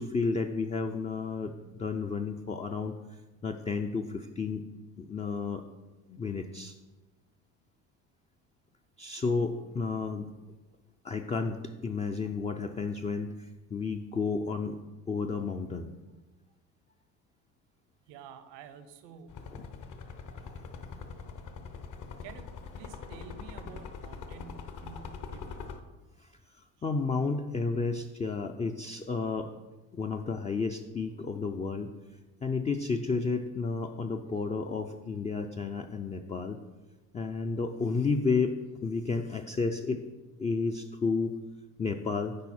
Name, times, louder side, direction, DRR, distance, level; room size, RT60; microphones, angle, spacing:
voice 1, 0.0-2.9 3.4-4.6 5.0-5.6 6.1-6.8 9.0-10.3 11.0-14.8 15.1-15.9 19.5-19.6 26.2-26.3 26.8-29.5 29.9-31.9 32.4-36.6 37.1-38.5 38.8-40.0 40.4-41.3 41.8-42.4, left 4 dB, 15° left, 5 dB, 0.4 m, -31 dB
voice 2, 18.1-19.5 22.2-25.9, right 6 dB, 70° right, 11 dB, 0.8 m, -50 dB
sound 1, 19.3-25.8, left 5 dB, 45° left, 0.9 m, -43 dB
10.5 x 4.0 x 4.3 m, 1.2 s
supercardioid pair, 75°, 43 cm